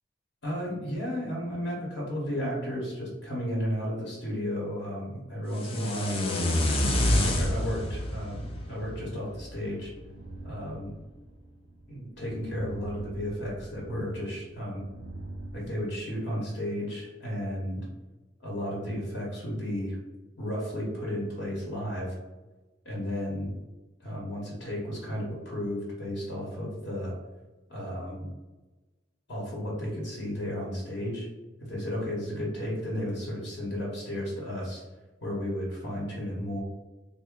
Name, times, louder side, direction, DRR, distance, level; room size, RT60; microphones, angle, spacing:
voice 1, 0.4-6.7 7.2-9.9 10.4-10.9 11.9-14.8 15.5-17.9 18.4-20.0 20.4-22.1 22.8-23.5 24.0-27.1 27.7-28.3 29.3-31.3 31.6-34.8 35.2-36.6, equal, 65° left, -4 dB, 0.9 m, -33 dB
sound 1, 5.5-9.6, left 1 dB, 30° left, 0.4 m, -27 dB
sound 2, 9.8-15.6, right 1 dB, 45° right, 0.4 m, -44 dB
3.4 x 2.0 x 3.6 m, 1.1 s
head